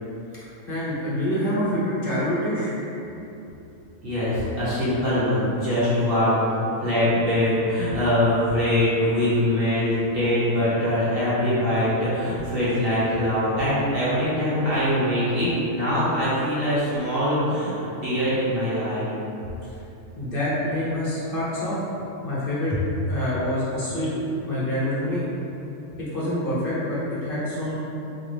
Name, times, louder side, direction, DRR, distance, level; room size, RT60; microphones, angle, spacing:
voice 1, 0.7-2.8 20.1-21.8 22.2-25.3 26.1-27.8, left 1 dB, 40° left, -9 dB, 1.1 m, -26 dB
voice 2, 4.0-6.4 6.8-17.7 18.0-19.1, left 1 dB, 45° right, -12 dB, 1.1 m, -23 dB
4.3 x 2.5 x 3.2 m, 2.9 s
omnidirectional pair, 1.5 m